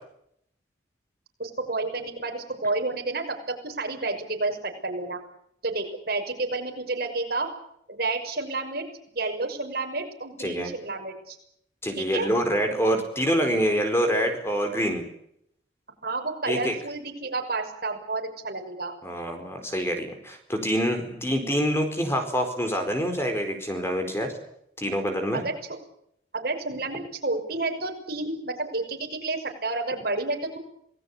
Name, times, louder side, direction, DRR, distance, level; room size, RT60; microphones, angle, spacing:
voice 1, 1.4-5.2 5.6-7.5 7.9-8.8 9.1-11.4 12.0-12.3 16.0-19.0 25.3-25.8 26.3-30.6, right 3 dB, 55° right, 3 dB, 5.9 m, -30 dB
voice 2, 10.4-10.7 11.8-15.1 16.5-16.7 19.0-24.3 24.8-25.4, equal, 15° left, 5 dB, 4.5 m, -26 dB
27.5 x 19.5 x 8.5 m, 0.74 s
head